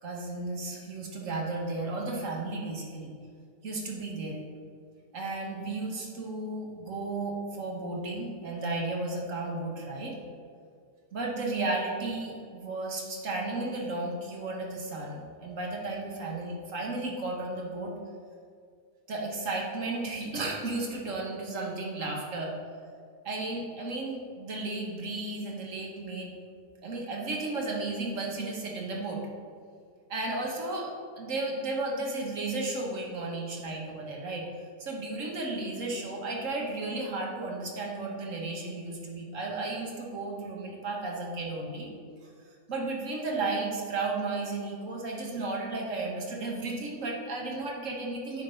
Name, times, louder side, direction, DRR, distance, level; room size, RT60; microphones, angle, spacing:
voice 1, 0.0-3.1 3.6-4.4 5.1-10.2 11.1-17.9 19.1-22.5 23.2-26.3 26.8-29.2 30.1-34.5 34.8-41.9 42.7-48.4, right 2 dB, 55° right, -1 dB, 1.5 m, -34 dB
9.9 x 3.7 x 5.3 m, 2.2 s
omnidirectional pair, 1.7 m